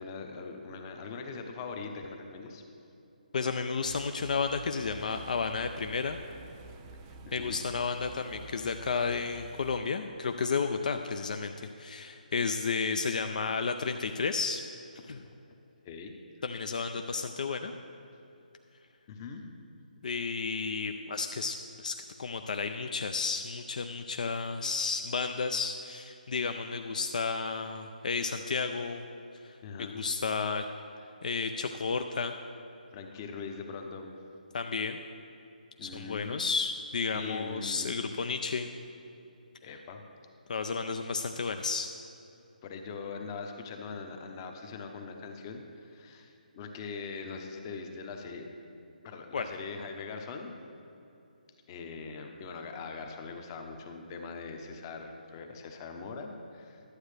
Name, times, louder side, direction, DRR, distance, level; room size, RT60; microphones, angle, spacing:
voice 1, 0.0-2.6 7.3-7.6 15.0-15.1 15.8-16.1 19.1-19.5 29.6-30.0 32.9-34.1 35.8-36.4 37.1-38.0 39.6-40.0 42.6-48.5 49.0-50.5 51.7-56.8, left 4 dB, 25° left, 4 dB, 0.8 m, -41 dB
voice 2, 3.3-6.2 7.3-14.6 15.1-15.2 16.4-17.7 20.0-29.0 29.4-30.6 31.2-32.3 34.5-35.0 35.8-38.7 39.7-39.8 40.5-41.9 49.3-49.5, left 4 dB, 55° left, 7 dB, 0.4 m, -32 dB
sound 1, 3.8-9.8, right 3 dB, 20° right, 0.5 m, -50 dB
11.5 x 7.9 x 3.3 m, 2.9 s
figure-of-eight pair, 150°, 5 cm